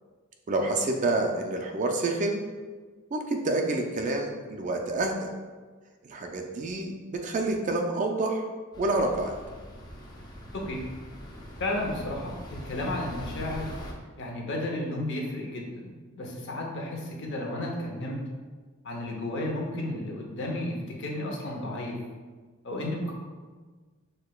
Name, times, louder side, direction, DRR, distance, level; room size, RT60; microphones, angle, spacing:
voice 1, 0.5-2.4 3.1-5.3 6.0-8.4 8.8-9.4, right 2 dB, 35° right, 2 dB, 0.3 m, -28 dB
sound 1, 8.7-13.9, equal, 20° left, 0.5 m, -42 dB
voice 2, 10.5-10.9 11.6-13.7 14.2-18.2 18.8-22.0 22.6-23.1, left 1 dB, 55° left, -1 dB, 0.7 m, -33 dB
6.4 x 2.2 x 2.2 m, 1.4 s
head